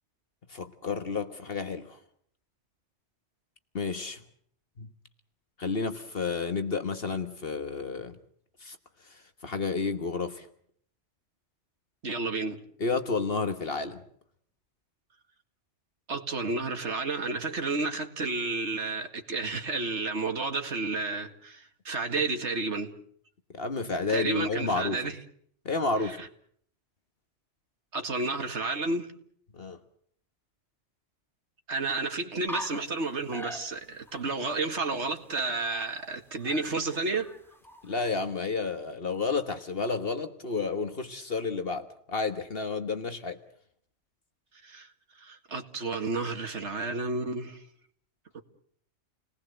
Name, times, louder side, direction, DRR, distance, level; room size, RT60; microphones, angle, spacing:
voice 1, 0.5-2.0 3.7-4.2 4.8-4.9 5.6-8.2 8.6-8.8 9.1-10.5 12.8-14.0 23.5-25.0 25.6-26.2 29.5-29.8 37.8-43.4, left 4 dB, 55° left, 1.6 m, -31 dB
voice 2, 12.0-12.6 16.1-22.9 24.1-25.2 26.0-26.3 27.9-29.1 31.7-37.3 44.6-44.9 45.2-47.6 48.3-48.4, right 3 dB, 75° right, 2.3 m, -31 dB
sound 1, 32.5-33.0 33.3-34.2 34.5-34.6 34.8-36.1 36.4-38.1, left 1 dB, ahead, 2.3 m, -42 dB
29.0 x 19.0 x 7.8 m
omnidirectional pair, 1.2 m